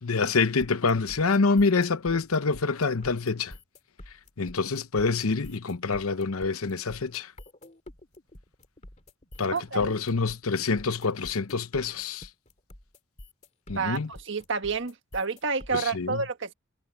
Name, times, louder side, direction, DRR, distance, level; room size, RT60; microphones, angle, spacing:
voice 1, 0.0-3.5 4.4-7.3 9.4-12.3 13.7-14.1 15.7-16.2, left 4 dB, 85° left, 0.9 m, -26 dB
sound 1, 0.6-15.9, left 1 dB, 35° left, 2.9 m, -47 dB
voice 2, 9.5-9.9 13.7-16.5, right 4 dB, 60° right, 1.5 m, -30 dB
head